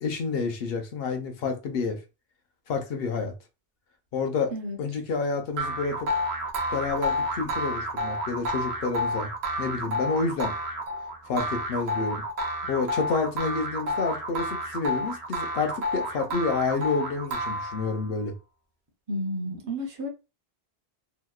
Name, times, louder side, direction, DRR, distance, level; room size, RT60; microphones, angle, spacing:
voice 1, 0.0-2.0 2.7-3.3 4.1-4.5 4.8-6.1 6.7-9.3 9.6-10.5 11.3-12.2 12.6-18.3, left 4 dB, 75° left, 0.8 m, -29 dB
sound 1, 5.6-18.1, equal, 90° right, 0.8 m, -30 dB
voice 2, 19.1-20.1, equal, 35° right, 0.5 m, -31 dB
2.8 x 2.1 x 2.2 m
omnidirectional pair, 1.0 m